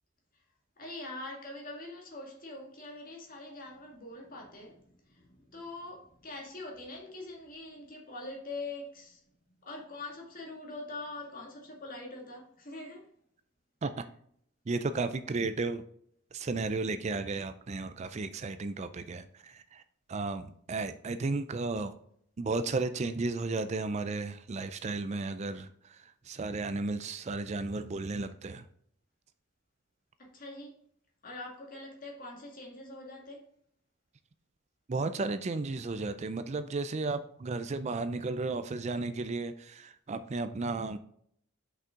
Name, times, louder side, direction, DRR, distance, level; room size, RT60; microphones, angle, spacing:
voice 1, 0.8-4.8 5.1-9.2 9.6-13.1 30.2-30.7 31.2-33.5, left 2 dB, 40° left, 1.9 m, -43 dB
voice 2, 14.7-15.8 16.3-19.8 20.1-21.9 22.4-28.7 34.9-41.0, right 3 dB, 30° right, 0.4 m, -34 dB
6.1 x 5.5 x 3.7 m
head